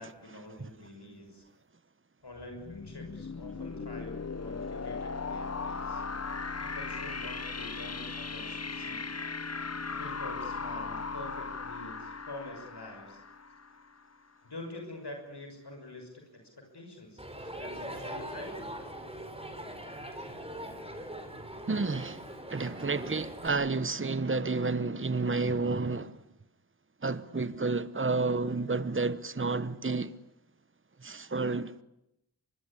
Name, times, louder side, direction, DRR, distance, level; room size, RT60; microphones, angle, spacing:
voice 1, 0.0-1.4 2.2-6.0 6.6-9.0 10.0-13.2 14.4-16.4 16.7-18.7, left 2 dB, 70° left, 6.2 m, -46 dB
sound 1, 2.4-14.1, left 4 dB, 40° left, 0.9 m, -38 dB
Crowd, 17.2-23.5, right 1 dB, 15° right, 4.2 m, -41 dB
voice 2, 21.7-26.2 27.0-30.1 31.0-31.8, right 3 dB, 30° right, 1.1 m, -30 dB
25.0 x 21.0 x 10.0 m
wide cardioid pair, 55°, 41 cm